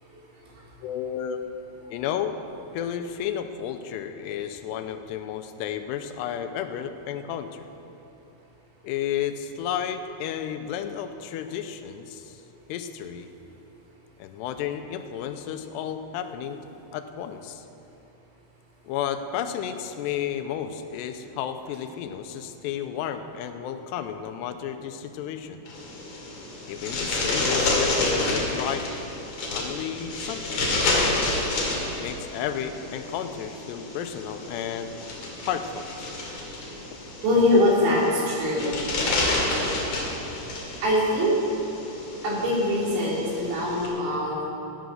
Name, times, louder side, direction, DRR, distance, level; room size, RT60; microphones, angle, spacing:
voice 1, 0.1-0.7 37.2-38.8 39.2-39.3 40.0-40.1 40.5-41.4 42.2-44.4, left 1 dB, 85° right, -4 dB, 5.2 m, -23 dB
voice 2, 0.8-1.4 1.9-2.4 2.7-7.7 8.8-12.4 12.7-13.3 14.2-16.6 16.9-17.7 18.9-25.6 26.7-28.9 29.5-30.8 31.8-35.0 35.4-35.9, left 9 dB, 90° left, 8 dB, 2.8 m, -32 dB
sound 1, 25.7-43.9, left 2 dB, 50° left, 3.3 m, -29 dB
16.5 x 9.4 x 6.4 m, 3.0 s
omnidirectional pair, 4.8 m